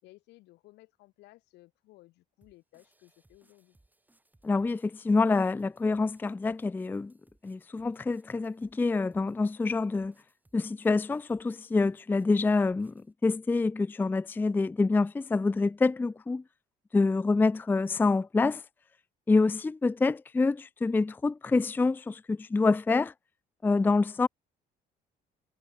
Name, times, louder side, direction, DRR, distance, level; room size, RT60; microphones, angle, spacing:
voice 1, 0.0-3.8, left 19 dB, 85° left, 4.0 m, -57 dB
sound 1, 2.4-13.1, right 2 dB, 10° right, 6.3 m, -68 dB
voice 2, 4.4-7.1 7.4-10.1 10.5-12.9 13.2-16.4 16.9-18.6 19.3-23.1 23.6-24.3, left 3 dB, 10° left, 0.4 m, -26 dB
cardioid pair, 110°, 17 cm